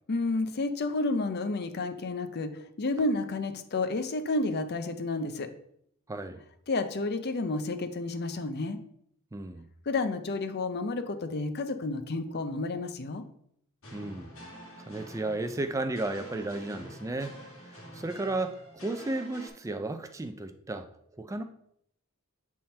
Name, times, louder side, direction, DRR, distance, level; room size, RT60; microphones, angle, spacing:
voice 1, 0.1-5.5 6.7-8.8 9.9-13.3, left 2 dB, 50° left, 9 dB, 0.6 m, -31 dB
voice 2, 6.1-6.4 9.3-9.7 13.9-14.3 14.9-21.4, right 2 dB, 15° right, 7 dB, 0.4 m, -34 dB
sound 1, 13.8-19.5, equal, 70° left, 1.7 m, -47 dB
7.5 x 3.6 x 4.3 m, 0.70 s
head